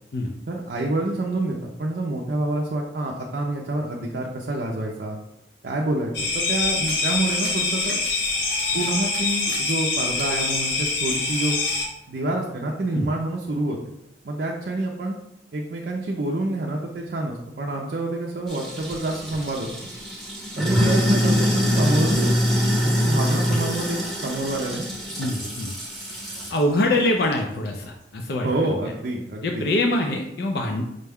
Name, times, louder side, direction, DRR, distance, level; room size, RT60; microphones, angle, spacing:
voice 1, 0.5-5.2 5.6-8.0 8.7-11.6 12.1-13.8 14.2-15.2 15.5-19.7 20.6-22.4 22.8-24.9 28.4-29.7, right 2 dB, 55° right, -1 dB, 0.5 m, -27 dB
sound 1, 6.1-11.9, left 3 dB, 80° left, 0.9 m, -25 dB
Sink (filling or washing), 18.5-26.6, equal, ahead, 0.8 m, -24 dB
voice 2, 25.2-25.8 26.3-28.5 29.4-30.8, left 1 dB, 60° left, 2 dB, 0.4 m, -24 dB
5.1 x 2.2 x 3.4 m, 0.84 s
head